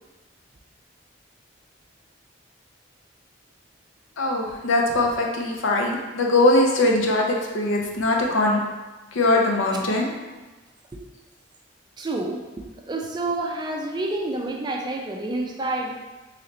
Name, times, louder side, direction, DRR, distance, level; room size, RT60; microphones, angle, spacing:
voice 1, 4.2-8.6 9.1-10.1, left 2 dB, 90° left, 0 dB, 0.6 m, -21 dB
voice 2, 12.0-15.9, right 2 dB, 20° right, 1 dB, 0.3 m, -29 dB
3.2 x 3.0 x 3.8 m, 1.2 s
head